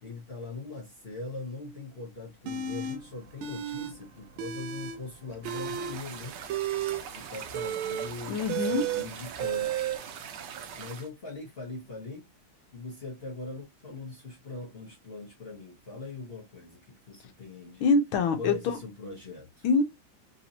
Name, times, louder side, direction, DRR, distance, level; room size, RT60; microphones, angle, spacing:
voice 1, 0.0-6.4 7.2-9.8 10.7-12.3 12.7-17.9 18.4-19.7, left 3 dB, 45° left, 0.8 m, -41 dB
sound 1, 2.5-3.0 3.4-3.9 4.2-5.0 5.3-10.0, right 9 dB, 85° right, 1.5 m, -32 dB
sound 2, 5.4-11.1, right 7 dB, 70° right, 1.2 m, -42 dB
voice 2, 8.3-8.8 17.8-18.8 19.6-19.8, left 4 dB, 80° left, 1.6 m, -24 dB
3.9 x 2.9 x 2.7 m
omnidirectional pair, 2.3 m